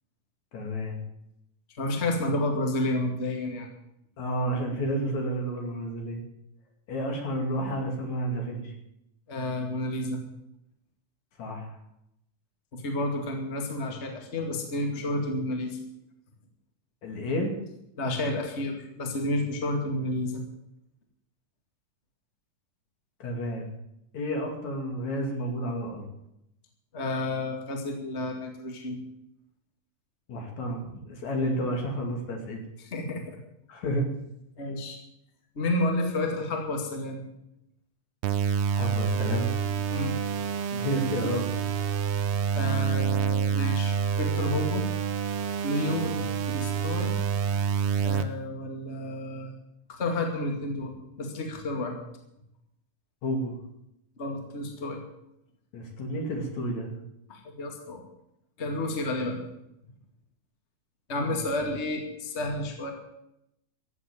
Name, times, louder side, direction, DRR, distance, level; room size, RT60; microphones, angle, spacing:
voice 1, 0.5-1.0 4.2-6.2 6.9-8.7 11.4-11.7 17.0-17.5 23.2-23.7 24.1-26.1 30.3-30.8 31.1-32.6 33.7-34.1 38.7-39.5 40.7-41.5 53.2-53.6 55.7-56.9 61.2-61.4, equal, 60° left, 2 dB, 3.6 m, -30 dB
voice 2, 1.7-3.7 9.3-10.2 12.7-15.8 18.0-20.4 26.9-29.0 32.8-33.2 34.6-35.0 35.6-37.2 39.9-40.2 42.6-44.8 45.6-46.1 46.4-47.2 48.0-49.5 49.9-51.9 54.2-55.0 57.3-58.0 58.6-59.4 61.1-62.9, left 1 dB, 25° left, 2 dB, 2.1 m, -30 dB
sound 1, 38.2-48.2, right 6 dB, 85° right, 1.2 m, -27 dB
15.0 x 8.1 x 8.9 m, 0.82 s
omnidirectional pair, 3.7 m